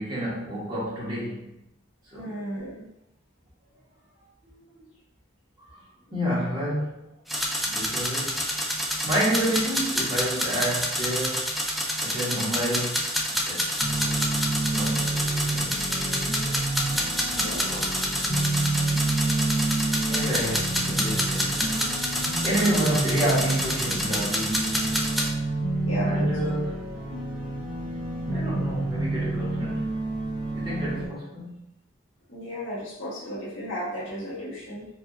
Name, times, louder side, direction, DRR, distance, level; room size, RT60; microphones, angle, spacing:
voice 1, 0.0-1.5 2.0-2.4 4.4-4.9 5.6-7.1 7.7-8.6 9.0-11.5 12.0-15.1 15.4-15.9 17.3-17.9 20.1-21.8 22.1-25.1 26.0-26.9 28.3-29.9 30.5-31.7, equal, 25° right, -9 dB, 1.4 m, -30 dB
voice 2, 2.1-2.9 17.3-17.6 22.8-23.0 25.8-26.5 32.3-34.9, equal, 85° left, -6 dB, 1.3 m, -34 dB
sound 1, 7.3-25.3, equal, ahead, 0.4 m, -28 dB
sound 2, 13.8-31.1, right 2 dB, 65° right, 1.5 m, -29 dB
4.4 x 2.5 x 2.6 m, 0.86 s
head